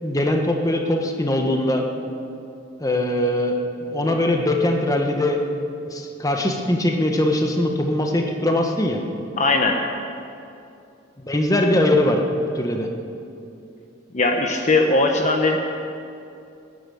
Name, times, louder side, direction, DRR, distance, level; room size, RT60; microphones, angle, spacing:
voice 1, 0.0-1.8 2.8-5.4 5.9-9.0 11.2-12.2 12.5-12.9, left 1 dB, 20° left, 2 dB, 1.3 m, -21 dB
voice 2, 9.4-9.8 14.1-15.6, left 2 dB, 40° left, 3 dB, 1.1 m, -19 dB
19.5 x 10.5 x 7.1 m, 2.6 s
head